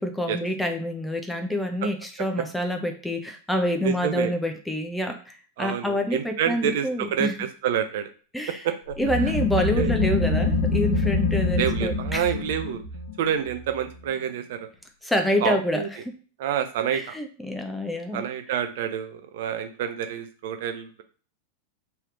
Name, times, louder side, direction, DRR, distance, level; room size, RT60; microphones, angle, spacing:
voice 1, 0.0-7.3 8.3-8.6 9.0-12.3 15.0-15.8 16.9-18.2, equal, 5° left, 4 dB, 0.4 m, -27 dB
voice 2, 3.8-4.3 5.6-8.1 8.6-9.0 9.7-9.9 11.6-12.8 13.2-14.6 15.4-15.9 16.4-17.1 18.1-21.0, right 9 dB, 55° right, 8 dB, 0.4 m, -28 dB
sound 1, 8.9-14.2, left 3 dB, 55° left, 0.8 m, -25 dB
3.1 x 2.8 x 2.4 m, 0.39 s
figure-of-eight pair, 90°, 0 cm